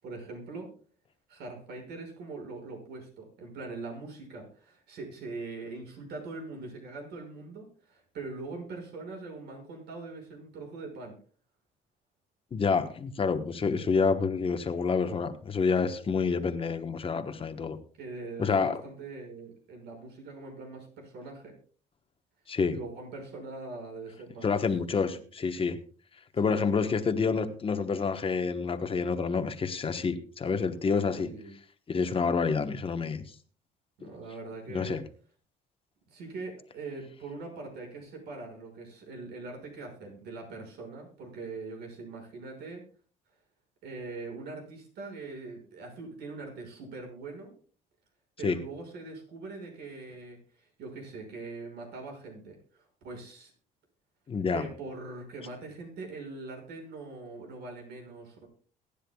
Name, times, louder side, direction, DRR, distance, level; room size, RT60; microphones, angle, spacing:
voice 1, 0.0-0.7 1.3-11.1 18.0-21.5 22.6-24.6 24.8-24.9 26.4-26.6 31.1-31.5 34.0-35.0 36.1-42.8 43.8-47.5 48.4-53.5 54.5-58.5, right 3 dB, 75° right, 2 dB, 6.0 m, -42 dB
voice 2, 12.5-17.8 18.4-18.8 22.5-22.8 24.4-25.8 26.3-31.3 31.9-33.2 34.0-34.1 34.7-35.0 48.4-48.6 54.3-54.6, left 5 dB, 35° left, 8 dB, 1.2 m, -28 dB
23.0 x 10.0 x 2.4 m, 0.40 s
cardioid pair, 110°, 17 cm